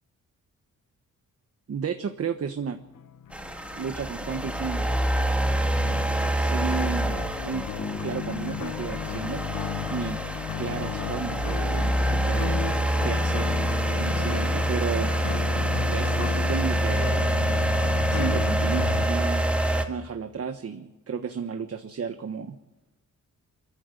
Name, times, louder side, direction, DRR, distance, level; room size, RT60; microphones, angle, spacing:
voice 1, 1.7-2.8 3.8-4.9 6.3-7.7 8.0-9.4 9.9-10.2 10.6-12.5 13.0-13.5 13.9-15.1 15.9-17.3 18.1-19.4 19.9-22.6, right 6 dB, 45° right, 7 dB, 1.3 m, -33 dB
sound 1, 2.7-19.1, left 10 dB, 75° left, 0.9 m, -35 dB
sound 2, 3.3-19.8, right 1 dB, 5° right, 2.1 m, -26 dB
sound 3, 7.8-10.8, left 3 dB, 25° left, 4.0 m, -41 dB
26.0 x 14.5 x 8.2 m, 1.0 s
cardioid pair, 105°, 32 cm